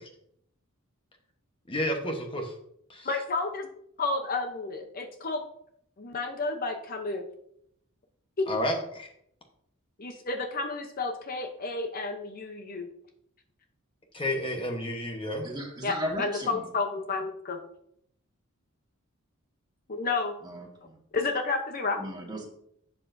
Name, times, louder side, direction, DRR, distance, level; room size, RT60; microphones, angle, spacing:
voice 1, 1.7-2.5 2.9-3.1 8.5-9.1 14.1-15.5, left 1 dB, 25° left, 1.1 m, -31 dB
voice 2, 3.0-3.7 4.0-5.4 6.0-7.3 8.4-8.5 10.0-12.9 15.8-17.6 19.9-20.3 21.1-22.0, left 3 dB, 40° left, 0.7 m, -31 dB
voice 3, 15.4-16.6 20.4-21.0 22.0-22.5, equal, 20° right, 1.7 m, -36 dB
11.5 x 7.9 x 2.6 m
head